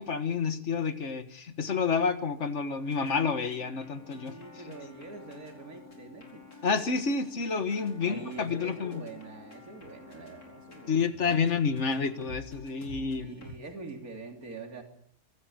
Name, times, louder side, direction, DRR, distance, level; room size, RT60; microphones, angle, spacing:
voice 1, 0.0-4.4 6.6-9.0 10.9-13.3, left 5 dB, 55° left, 10 dB, 1.8 m, -29 dB
sound 1, 2.7-13.5, left 3 dB, 85° left, 5.2 m, -50 dB
voice 2, 4.1-6.5 8.0-11.1 13.2-14.8, right 3 dB, 75° right, 3 dB, 3.6 m, -44 dB
25.5 x 13.5 x 8.8 m, 0.67 s
omnidirectional pair, 1.5 m